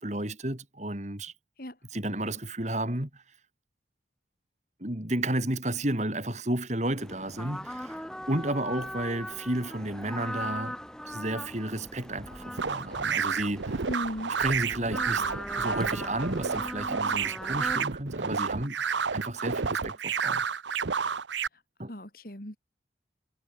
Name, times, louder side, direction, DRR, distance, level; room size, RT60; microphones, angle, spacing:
voice 1, 0.0-1.3 1.9-3.2 4.8-10.8 11.1-13.8 14.4-15.3 15.6-18.8 19.1-20.4 21.8-21.9, right 1 dB, 40° right, 3.4 m, -32 dB
sound 1, 7.0-17.8, equal, 5° left, 4.2 m, -40 dB
sound 2, 12.6-21.5, right 6 dB, 80° right, 0.9 m, -30 dB
voice 2, 13.9-14.4 21.9-22.6, equal, 50° left, 4.7 m, -36 dB
head